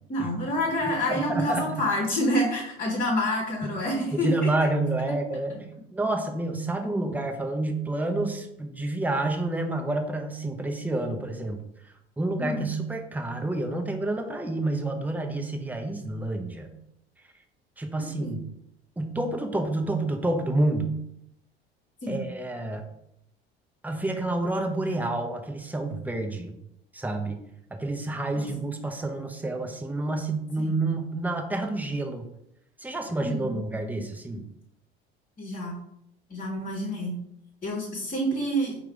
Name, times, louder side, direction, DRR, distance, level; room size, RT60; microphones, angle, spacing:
voice 1, 0.1-4.5 12.4-12.7 18.2-18.3 22.0-22.2 28.3-28.5 30.6-30.7 33.2-33.5 35.4-35.8 36.3-37.1 37.6-38.8, equal, 25° left, -2 dB, 1.4 m, -28 dB
voice 2, 1.1-1.8 4.1-5.6 5.9-11.6 12.2-16.7 17.8-18.4 19.0-21.0 22.1-22.8 23.8-26.5 26.9-27.4 27.7-32.3 32.8-34.5, right 2 dB, 5° right, 4 dB, 0.6 m, -29 dB
4.6 x 2.5 x 4.6 m, 0.79 s
figure-of-eight pair, 65°, 31 cm